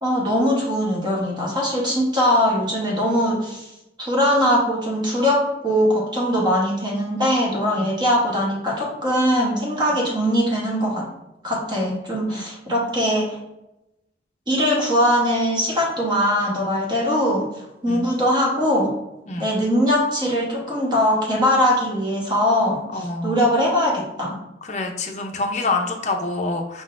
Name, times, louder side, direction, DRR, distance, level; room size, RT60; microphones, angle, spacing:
voice 1, 0.0-3.7 4.0-11.1 11.4-13.4 14.5-17.4 17.8-18.9 19.4-24.4, equal, 25° right, -3 dB, 1.0 m, -21 dB
voice 2, 22.9-23.4 24.6-26.8, left 3 dB, 40° left, 3 dB, 0.6 m, -27 dB
5.1 x 3.8 x 2.5 m, 0.89 s
head